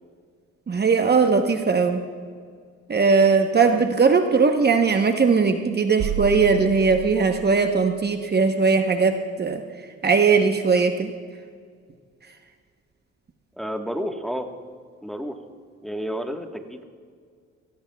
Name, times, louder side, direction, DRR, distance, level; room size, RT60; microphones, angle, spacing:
voice 1, 0.7-2.0 2.9-9.6 10.0-11.1, right 5 dB, 35° right, 5 dB, 0.9 m, -19 dB
sound 1, 6.0-7.8, right 9 dB, 60° right, 0.8 m, -31 dB
voice 2, 13.6-14.5 15.0-15.3 15.8-16.8, equal, ahead, 4 dB, 1.3 m, -30 dB
26.0 x 18.0 x 2.3 m, 2.1 s
cardioid pair, 90°, 30 cm